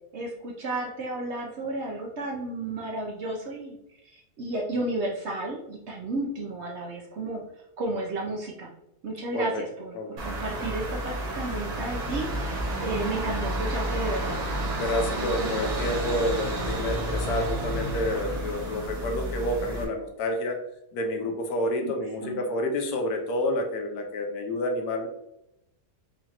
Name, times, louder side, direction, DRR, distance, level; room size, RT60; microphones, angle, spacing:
voice 1, 0.1-3.8 4.0-7.4 7.8-8.7 9.0-14.4 15.2-15.9 21.8-21.9 22.2-22.5, right 2 dB, 60° right, -1 dB, 0.7 m, -33 dB
voice 2, 9.3-9.6 9.9-10.2 14.7-20.6 20.9-25.1, left 1 dB, 75° left, 3 dB, 1.2 m, -29 dB
sound 1, 10.2-19.8, right 1 dB, 75° right, 1.5 m, -30 dB
4.9 x 2.5 x 2.8 m, 0.85 s
omnidirectional pair, 1.7 m